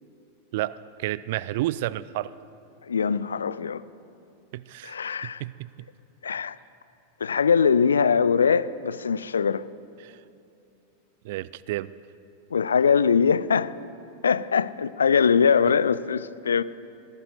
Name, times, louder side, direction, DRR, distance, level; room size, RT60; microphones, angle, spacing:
voice 1, 0.5-2.3 4.5-5.0 5.2-5.7 10.0-10.1 11.2-11.9, right 15 dB, 50° right, 0.3 m, -31 dB
voice 2, 2.9-3.8 4.8-5.4 6.2-6.6 7.2-9.6 12.5-13.7 14.2-16.6, left 6 dB, 70° left, 0.3 m, -22 dB
21.5 x 15.5 x 2.7 m
figure-of-eight pair, 90°, 0 cm